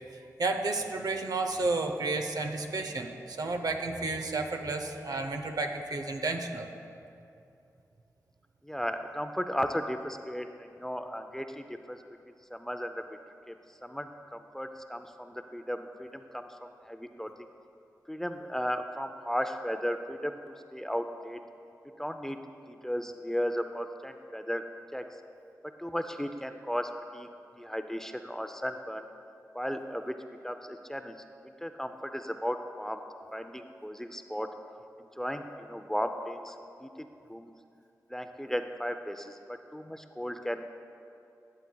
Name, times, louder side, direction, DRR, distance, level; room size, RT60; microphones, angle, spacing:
voice 1, 0.4-6.7, right 3 dB, 70° right, 5 dB, 0.7 m, -31 dB
voice 2, 8.6-12.0 12.5-13.0 13.5-13.6 13.8-17.3 18.1-20.4 20.7-21.4 22.0-22.4 22.7-24.6 24.9-25.0 25.8-27.3 27.6-29.1 29.5-30.2 30.4-31.1 31.6-33.0 33.3-34.5 35.2-36.5 36.8-36.9 37.3-37.5 38.1-40.7, equal, 5° left, 7 dB, 0.5 m, -35 dB
14.0 x 7.7 x 2.3 m, 2.6 s
cardioid pair, 50°, 7 cm